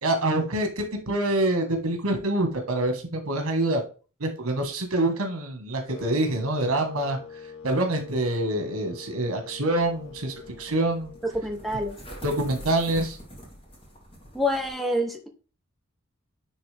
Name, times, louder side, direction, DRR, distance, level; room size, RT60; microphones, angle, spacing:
voice 1, 0.0-3.8 4.2-7.2 7.6-11.1 12.2-13.2, right 1 dB, 80° right, 4 dB, 1.5 m, -26 dB
sound 1, 5.9-12.0, left 5 dB, 55° left, 1.2 m, -44 dB
sound 2, 9.7-14.7, equal, 25° left, 1.9 m, -44 dB
voice 2, 11.3-12.0 14.3-15.3, left 1 dB, ahead, 4 dB, 0.8 m, -27 dB
10.0 x 3.4 x 3.4 m, 0.36 s
head